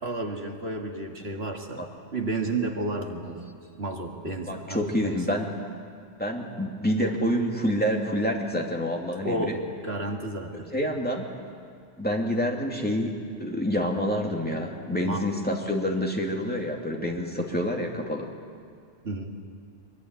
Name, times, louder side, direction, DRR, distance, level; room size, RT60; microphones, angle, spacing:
voice 1, 0.0-1.8 2.1-3.5 3.7-5.2 9.2-10.7 15.0-15.3 19.0-19.4, right 2 dB, 55° right, 2 dB, 2.2 m, -31 dB
voice 2, 4.5-5.5 6.2-9.6 10.7-11.2 12.0-18.3, equal, 5° left, 0 dB, 2.7 m, -27 dB
23.0 x 22.5 x 9.7 m, 2.2 s
omnidirectional pair, 1.3 m